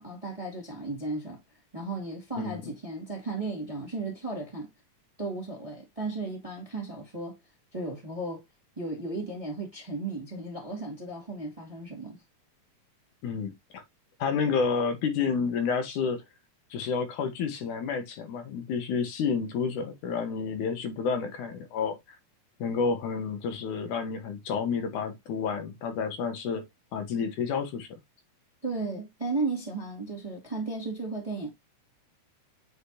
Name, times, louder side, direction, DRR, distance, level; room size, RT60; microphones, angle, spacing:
voice 1, 0.0-1.4 1.7-4.7 5.2-7.4 7.7-8.4 8.8-12.2 28.6-31.5, right 3 dB, 15° right, 1.5 m, -35 dB
voice 2, 13.2-13.8 14.2-16.2 16.7-22.0 22.6-26.6 26.9-27.9, left 5 dB, 70° left, 2.5 m, -30 dB
8.3 x 5.0 x 2.7 m
omnidirectional pair, 3.8 m